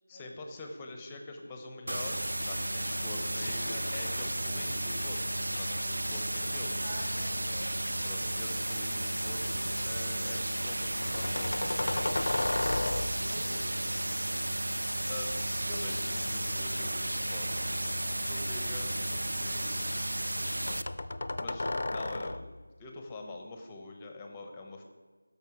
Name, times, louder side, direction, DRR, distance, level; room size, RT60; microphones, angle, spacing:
voice 1, 0.1-5.2 5.5-6.8 8.0-12.3 15.1-20.2 20.6-20.8 21.4-22.5 22.8-24.8, left 2 dB, 10° left, 3 dB, 0.7 m, -45 dB
sound 1, 1.9-20.8, right 1 dB, 75° right, 0.5 m, -33 dB
voice 2, 6.8-7.7 12.8-14.1, equal, 30° right, -5 dB, 2.7 m, -47 dB
sound 2, 7.0-8.3 8.7-9.4 11.0-13.4 15.9-17.4 18.0-19.2 20.7-22.6, left 2 dB, 55° left, 0.5 m, -35 dB
13.0 x 5.3 x 4.8 m, 1.4 s
figure-of-eight pair, 170°, 0 cm